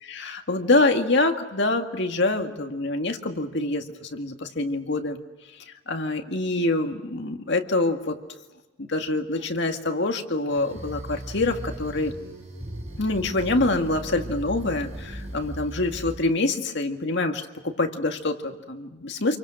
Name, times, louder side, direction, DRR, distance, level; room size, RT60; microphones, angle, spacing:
voice 1, 0.0-5.2 5.9-8.2 8.8-12.1 13.0-19.4, left 2 dB, 60° left, 5 dB, 2.0 m, -25 dB
sound 1, 10.5-16.2, right 1 dB, 35° right, 6.7 m, -37 dB
27.5 x 23.5 x 6.3 m, 1.2 s
head